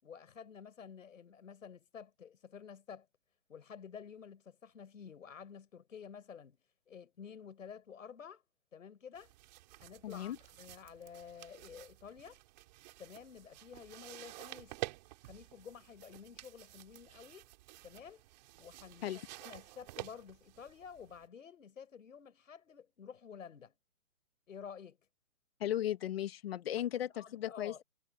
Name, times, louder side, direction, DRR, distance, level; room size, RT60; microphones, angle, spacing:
voice 1, 0.0-3.1 3.5-6.6 6.9-8.4 8.7-9.3 9.8-12.4 13.0-14.8 15.2-17.5 17.8-18.2 18.6-23.8 24.5-25.0 26.8-26.9 27.1-27.8, left 7 dB, 75° left, 6.5 m, -51 dB
sound 1, 9.1-21.3, right 18 dB, 35° right, 6.8 m, -50 dB
voice 2, 10.0-10.4 19.0-19.2 25.6-27.8, left 12 dB, 50° left, 2.2 m, -36 dB
hypercardioid pair, 160°, 39 cm